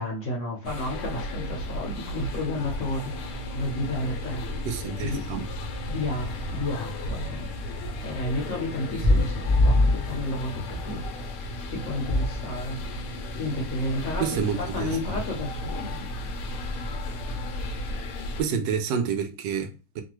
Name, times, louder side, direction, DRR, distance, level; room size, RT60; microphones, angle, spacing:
voice 1, 0.0-4.4 5.0-5.4 5.9-11.0 11.6-12.8 13.4-16.1, left 1 dB, 60° left, 0.9 m, -32 dB
sound 1, 0.6-18.4, left 1 dB, 75° left, 1.1 m, -35 dB
sound 2, 2.5-18.0, left 1 dB, 30° right, 0.4 m, -31 dB
voice 2, 4.7-5.5 14.2-15.2 18.4-20.0, right 6 dB, 80° right, 1.2 m, -29 dB
3.2 x 2.3 x 2.9 m
omnidirectional pair, 1.9 m